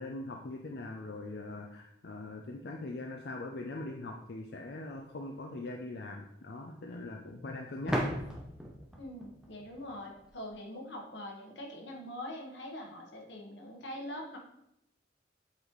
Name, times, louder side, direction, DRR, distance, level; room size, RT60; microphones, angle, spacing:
voice 1, 0.0-8.0, left 2 dB, 65° left, 2 dB, 0.5 m, -41 dB
sound 1, 4.9-5.0 7.9-10.5, equal, 5° right, 0.7 m, -37 dB
voice 2, 9.0-14.4, left 1 dB, 85° left, 0 dB, 1.3 m, -43 dB
8.0 x 4.1 x 3.1 m, 0.80 s
head